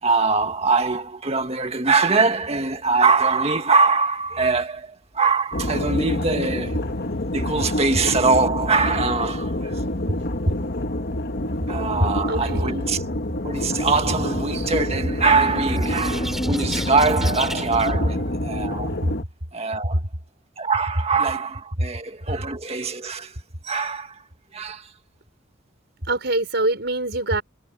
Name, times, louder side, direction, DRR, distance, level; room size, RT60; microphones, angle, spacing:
voice 1, 0.0-6.9 7.3-9.8 11.7-13.0 13.4-19.1 19.5-20.0 20.6-23.4 23.6-24.2 24.5-24.9, right 4 dB, 35° right, 1.8 m, -23 dB
sound 1, 5.5-19.2, left 1 dB, 55° left, 1.7 m, -27 dB
voice 2, 12.3-12.8 26.1-27.4, right 2 dB, 60° right, 6.1 m, -24 dB
sound 2, 13.6-18.9, equal, ahead, 3.5 m, -32 dB
head